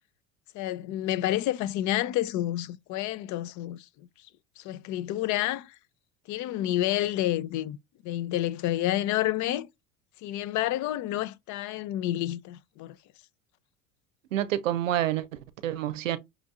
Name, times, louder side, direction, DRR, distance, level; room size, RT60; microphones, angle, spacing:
voice 1, 0.5-4.1 4.6-5.7 6.3-7.8 8.0-9.7 10.2-12.9, left 14 dB, 50° left, 0.6 m, -29 dB
voice 2, 14.3-16.2, right 12 dB, 90° right, 0.6 m, -28 dB
6.0 x 2.6 x 2.4 m
hypercardioid pair, 75°, 38 cm